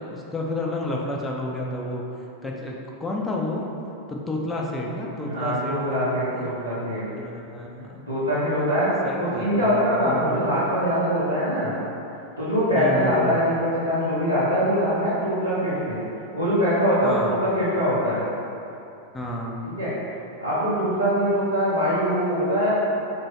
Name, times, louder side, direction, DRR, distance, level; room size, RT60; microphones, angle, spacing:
voice 1, 0.0-2.0 2.4-3.6 4.1-6.0 6.3-6.5 7.2-8.1 9.0-10.4 12.7-13.4 17.0-17.5 19.1-19.8, left 1 dB, 10° left, -2 dB, 0.5 m, -31 dB
voice 2, 5.2-7.1 8.1-8.9 9.2-11.7 12.4-16.0 16.3-18.2 19.6-19.9 20.4-22.9, equal, 90° right, -14 dB, 0.8 m, -23 dB
3.0 x 2.7 x 4.3 m, 2.8 s
figure-of-eight pair, 90°, 0 cm